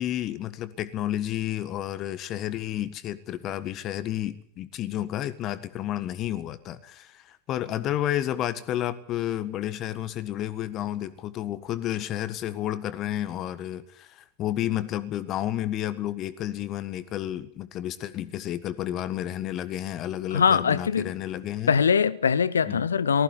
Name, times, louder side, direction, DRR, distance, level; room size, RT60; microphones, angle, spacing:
voice 1, 0.0-21.8 22.7-22.8, left 12 dB, 35° left, 1.5 m, -31 dB
voice 2, 20.3-21.1 21.7-23.2, left 6 dB, 70° left, 0.9 m, -22 dB
19.5 x 15.5 x 9.8 m
figure-of-eight pair, 90°, 0 cm